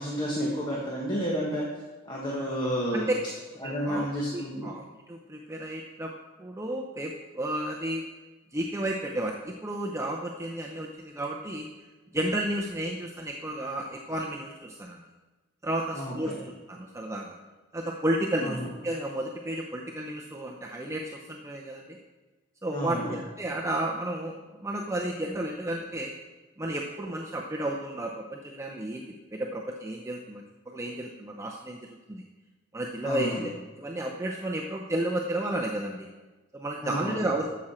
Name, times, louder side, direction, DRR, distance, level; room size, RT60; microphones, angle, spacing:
voice 1, 0.0-1.6 2.0-3.1 3.6-4.7 15.9-16.4 18.4-18.7 22.7-23.1 33.0-33.5 36.8-37.3, equal, 20° left, -4 dB, 1.4 m, -31 dB
voice 2, 3.6-4.1 4.3-6.1 6.4-8.0 8.5-11.7 12.1-15.0 15.6-17.3 17.7-22.0 22.6-26.1 26.6-29.0 29.3-31.8 32.1-32.2 32.7-36.1 36.5-37.5, right 1 dB, 15° right, -1 dB, 0.7 m, -32 dB
12.5 x 7.5 x 4.3 m, 1.2 s
head